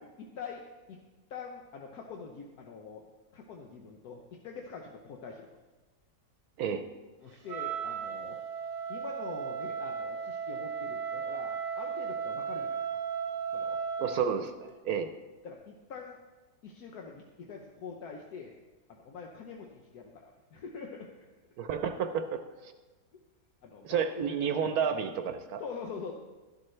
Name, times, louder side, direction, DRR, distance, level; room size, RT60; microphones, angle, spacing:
voice 1, 0.0-0.6 0.9-1.0 1.3-3.0 3.3-5.5 7.2-8.4 8.9-13.0 13.5-13.8 14.8-15.0 15.4-16.2 16.6-18.5 18.9-21.1 23.1-23.2 23.6-24.9 25.6-26.1, left 5 dB, 75° left, 1 dB, 1.4 m, -44 dB
Wind instrument woodwind instrument, 7.5-14.3, right 6 dB, 50° right, 1.1 m, -35 dB
voice 2, 14.0-15.1 21.6-22.7 23.8-25.6, right 7 dB, 75° right, 7 dB, 1.1 m, -31 dB
12.0 x 12.0 x 3.2 m, 1.2 s
omnidirectional pair, 1.6 m